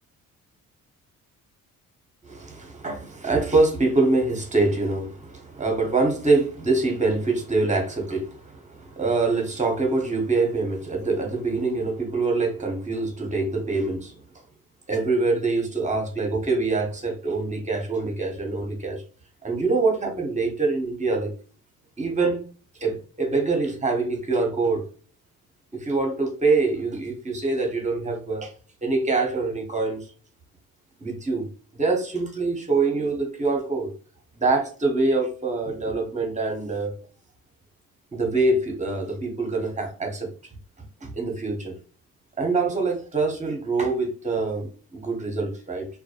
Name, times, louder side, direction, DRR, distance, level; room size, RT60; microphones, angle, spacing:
voice 1, 2.2-14.2 14.9-19.0 19.4-21.3 22.0-22.4 22.8-24.8 25.7-28.5 28.8-30.1 31.0-31.5 31.7-33.9 34.4-37.0 38.1-40.3 41.0-41.7 42.4-45.9, right 3 dB, 20° right, 0.9 m, -25 dB
2.3 x 2.1 x 2.8 m
supercardioid pair, 70°, 34 cm